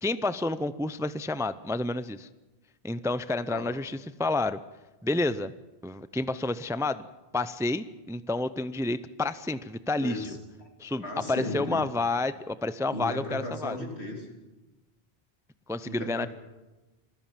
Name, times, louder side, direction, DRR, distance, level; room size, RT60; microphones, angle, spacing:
voice 1, 0.0-2.3 2.8-4.6 5.0-5.5 5.8-7.0 7.3-10.3 10.8-11.0 11.3-13.8 15.7-16.3, left 2 dB, 5° right, 14 dB, 0.4 m, -29 dB
voice 2, 10.0-10.7 11.0-11.8 12.9-14.3 15.9-16.3, left 2 dB, 80° left, 1 dB, 3.6 m, -36 dB
26.0 x 14.5 x 7.5 m, 1.1 s
omnidirectional pair, 1.1 m